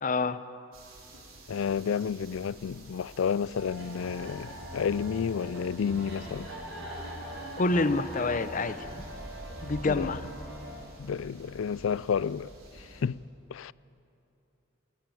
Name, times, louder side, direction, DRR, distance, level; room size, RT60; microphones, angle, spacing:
voice 1, 0.0-0.4 7.6-9.0 9.6-10.2, left 3 dB, 40° left, 0.7 m, -27 dB
sound 1, 0.7-13.0, right 2 dB, 90° right, 3.8 m, -51 dB
voice 2, 1.5-6.5 9.8-10.1 11.0-13.2 13.5-13.7, left 6 dB, 70° left, 0.4 m, -31 dB
sound 2, 3.5-10.8, equal, 60° right, 6.4 m, -42 dB
Explosion, 7.4-11.1, equal, 20° right, 4.7 m, -52 dB
23.0 x 14.0 x 9.3 m
head